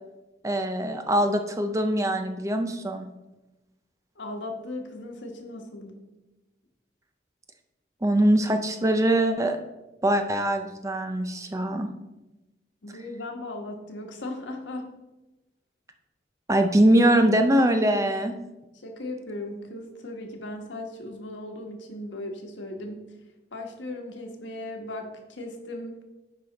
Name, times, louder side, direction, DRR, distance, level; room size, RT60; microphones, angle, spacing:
voice 1, 0.4-3.1 8.0-9.6 10.0-11.9 16.5-18.3, right 1 dB, 15° right, 6 dB, 0.5 m, -22 dB
voice 2, 4.2-6.0 12.8-14.9 18.7-23.1 23.5-26.0, left 1 dB, 90° left, 3 dB, 1.3 m, -37 dB
10.5 x 4.9 x 4.1 m, 1.0 s
head